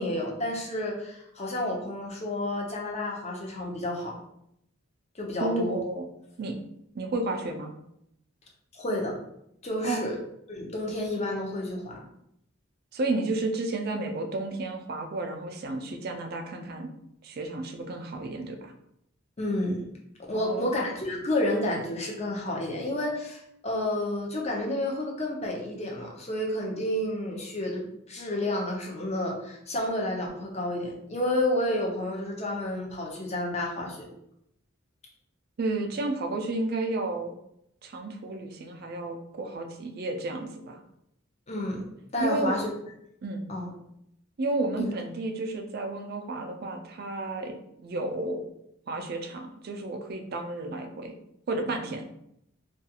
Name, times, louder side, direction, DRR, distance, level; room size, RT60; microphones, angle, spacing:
voice 1, 0.0-4.1 5.1-5.8 8.7-9.1 9.6-10.2 10.5-12.0 19.4-19.8 20.3-34.1 41.5-41.8 42.1-42.7 43.5-43.7 44.7-44.9, left 1 dB, 30° left, -2 dB, 0.6 m, -30 dB
voice 2, 5.4-6.1 6.4-6.6 6.9-7.7 9.8-10.0 12.9-16.9 17.2-18.7 20.3-20.7 35.6-37.3 37.8-40.8 42.2-42.5 43.2-43.5 44.4-48.5 48.9-51.2 51.5-52.0, right 2 dB, 50° right, 4 dB, 0.3 m, -32 dB
2.4 x 2.3 x 2.7 m, 0.77 s
head